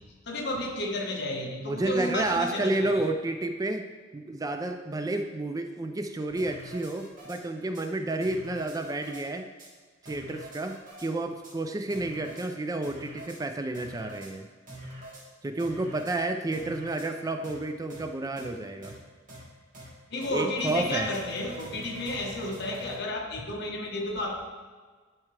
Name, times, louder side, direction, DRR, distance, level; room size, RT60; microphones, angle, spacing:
voice 1, 0.3-2.9 14.7-14.9 20.1-24.3, left 1 dB, 60° left, 1 dB, 1.2 m, -32 dB
voice 2, 1.6-3.9 4.1-9.5 10.1-14.5 15.4-18.9 20.3-21.1, right 2 dB, 20° right, 7 dB, 0.4 m, -30 dB
sound 1, 6.4-7.4 7.7-7.8 8.2-9.2 9.6-9.7 10.1-11.1 11.4-11.5 11.9-12.5 12.8-13.4 13.7-14.3 14.7-15.2 15.6-16.2 16.5-17.1 17.4-17.6 17.9-18.0 18.4-18.5 18.8-19.0 19.3-19.4 19.7-19.9 20.2-20.3 20.7-23.0, equal, 45° right, 1.9 m, -45 dB
10.5 x 4.6 x 3.3 m, 1.5 s
head